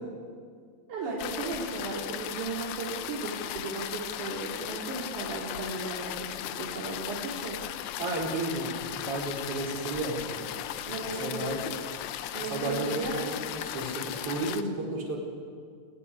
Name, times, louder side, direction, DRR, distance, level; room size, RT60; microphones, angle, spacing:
voice 1, 0.9-7.6 10.9-11.8 12.3-13.3, right 3 dB, 50° right, -2 dB, 3.9 m, -35 dB
sound 1, 1.2-14.6, left 12 dB, 80° left, 2.7 m, -37 dB
voice 2, 8.0-10.5 11.2-11.6 12.4-15.2, right 2 dB, 35° right, -1 dB, 4.9 m, -33 dB
27.0 x 15.5 x 9.9 m, 2.1 s
omnidirectional pair, 4.7 m